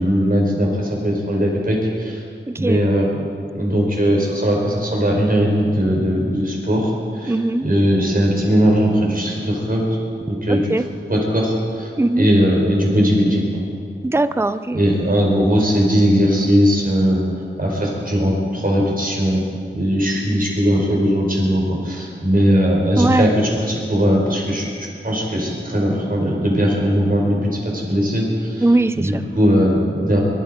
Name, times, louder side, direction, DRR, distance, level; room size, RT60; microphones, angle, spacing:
voice 1, 0.0-2.2 2.6-3.2 3.5-7.3 7.6-9.8 10.3-10.7 11.1-11.9 12.2-13.4 14.7-17.2 17.6-19.4 19.7-24.7 25.0-28.6 28.9-30.2, equal, 45° right, -2 dB, 5.2 m, -19 dB
voice 2, 2.5-2.8 7.3-7.7 10.5-10.9 12.0-12.3 14.0-14.8 23.0-23.3 28.6-29.2, right 2 dB, 10° right, 12 dB, 0.5 m, -19 dB
22.5 x 12.0 x 5.2 m, 2.3 s
wide cardioid pair, 50°, 20 cm